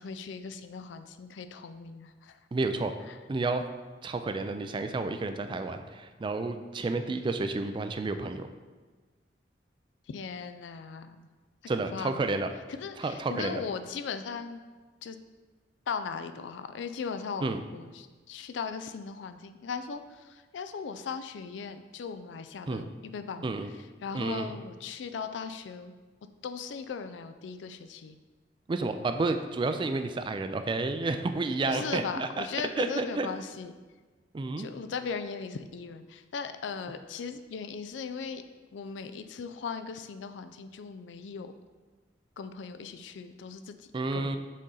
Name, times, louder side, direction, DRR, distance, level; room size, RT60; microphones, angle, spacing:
voice 1, 0.0-2.4 3.1-3.2 10.1-11.3 11.9-12.2 12.8-14.6 15.0-15.2 15.9-23.5 24.0-25.9 26.4-28.2 31.7-33.7 34.6-38.4 38.7-41.5 42.4-44.3, left 5 dB, 75° left, 9 dB, 0.4 m, -38 dB
voice 2, 2.5-2.9 3.3-3.7 4.0-8.5 11.7-12.5 13.0-13.6 17.4-17.6 22.7-22.8 23.4-23.7 24.1-24.6 28.7-32.5 32.8-33.3 34.3-34.7 43.9-44.4, right 3 dB, 25° right, 8 dB, 0.3 m, -30 dB
6.3 x 4.2 x 3.8 m, 1.3 s
head